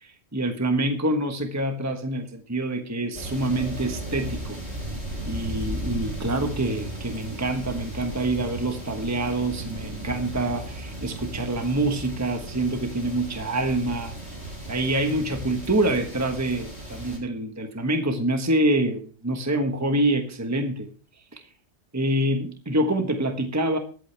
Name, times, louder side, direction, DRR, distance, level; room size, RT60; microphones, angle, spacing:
voice 1, 0.0-4.6 5.2-14.1 14.7-20.9 21.3-21.4 21.9-23.8, right 1 dB, 15° right, 5 dB, 1.2 m, -26 dB
sound 1, 3.1-17.2, right 1 dB, 35° right, 8.1 m, -35 dB
21.5 x 8.5 x 3.3 m, 0.39 s
omnidirectional pair, 1.1 m